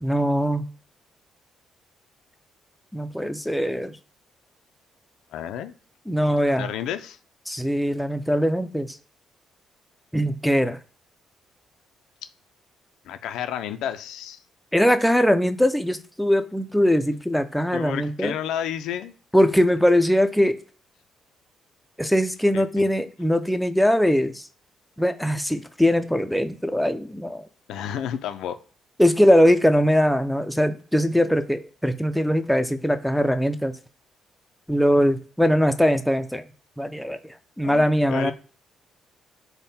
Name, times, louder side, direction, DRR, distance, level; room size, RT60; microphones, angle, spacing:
voice 1, 0.0-0.7 2.9-4.0 6.1-6.7 7.5-9.0 10.1-10.8 14.7-18.3 19.3-20.6 22.0-24.5 25.0-27.4 29.0-33.7 34.7-36.4 36.8-38.3, equal, ahead, 8 dB, 0.3 m, -21 dB
voice 2, 5.3-5.7 6.6-7.2 13.0-14.4 17.7-19.1 22.5-22.8 27.7-28.6 37.6-38.3, left 9 dB, 85° left, 10 dB, 0.3 m, -31 dB
3.5 x 2.1 x 4.0 m, 0.40 s
cardioid pair, 90°, 0 cm